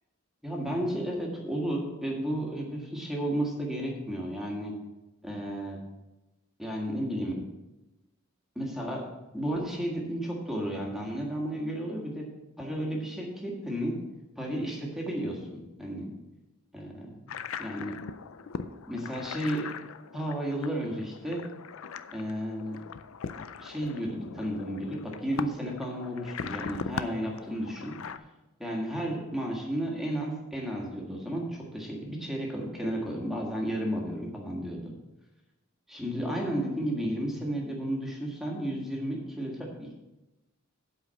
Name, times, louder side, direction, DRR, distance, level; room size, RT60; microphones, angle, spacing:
voice 1, 0.4-4.8 5.2-5.8 6.6-7.4 8.6-9.0 9.3-12.3 12.6-14.0 14.4-16.1 16.7-17.1 17.6-18.0 18.9-19.7 20.1-21.4 22.1-22.8 23.6-27.9 28.6-34.9 35.9-39.9, equal, ahead, -1 dB, 1.6 m, -33 dB
sound 1, 17.3-28.2, left 6 dB, 65° left, 0.4 m, -40 dB
8.2 x 5.0 x 7.5 m, 1.0 s
head